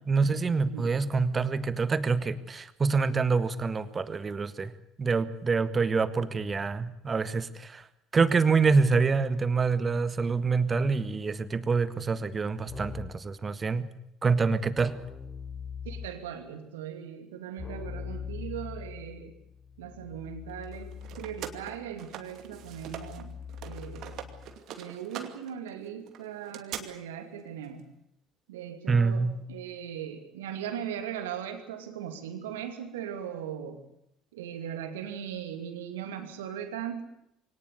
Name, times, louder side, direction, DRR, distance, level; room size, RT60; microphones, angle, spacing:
voice 1, 0.1-4.7 5.0-7.8 8.1-13.9 14.2-15.0 28.9-29.4, right 4 dB, 30° right, 13 dB, 1.7 m, -26 dB
Keyboard (musical), 12.7-13.3 14.8-16.4 17.6-24.6, left 6 dB, 25° left, 3.6 m, -42 dB
voice 2, 15.8-19.3 19.8-24.3 24.8-27.9 28.5-33.8 34.3-37.0, right 9 dB, 80° right, 7 dB, 2.7 m, -39 dB
sound 1, 20.6-23.2 23.5-26.8, right 10 dB, 55° right, 2.5 m, -42 dB
23.5 x 18.5 x 8.3 m, 0.79 s
hypercardioid pair, 60°, 0 cm